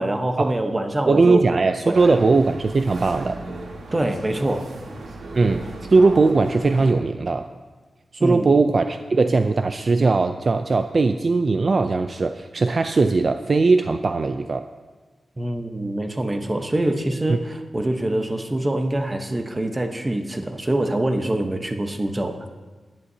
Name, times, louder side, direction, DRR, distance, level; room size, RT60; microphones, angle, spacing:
voice 1, 0.0-1.4 1.9-2.2 3.9-4.7 8.2-8.5 15.4-22.5, right 1 dB, 20° right, 5 dB, 1.0 m, -24 dB
voice 2, 1.1-3.4 5.3-7.5 8.1-14.7 17.3-17.4, right 3 dB, 45° right, 8 dB, 0.4 m, -19 dB
sound 1, 1.9-6.9, right 2 dB, 75° right, 1.5 m, -36 dB
17.5 x 10.5 x 2.8 m, 1.4 s
wide cardioid pair, 110°, 0 cm